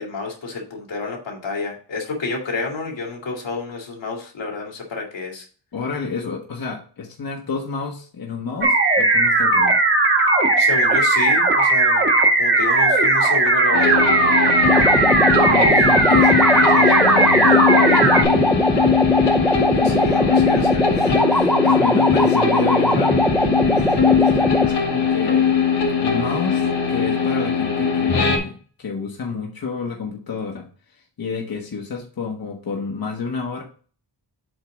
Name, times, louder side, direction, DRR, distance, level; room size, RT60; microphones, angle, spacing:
voice 1, 0.0-5.5 10.6-12.1 12.4-13.9 19.8-20.9, left 3 dB, 85° left, -1 dB, 2.5 m, -29 dB
voice 2, 5.7-9.8 15.0-19.0 19.7-20.3 20.9-25.5 26.0-33.6, left 4 dB, 50° left, 0 dB, 1.4 m, -30 dB
sound 1, 8.6-18.2, right 2 dB, 25° right, 1.3 m, -17 dB
sound 2, 13.7-28.4, left 6 dB, 70° left, 2.3 m, -20 dB
sound 3, 14.6-24.7, equal, ahead, 0.5 m, -20 dB
7.9 x 3.8 x 4.9 m, 0.40 s
wide cardioid pair, 170°, 43 cm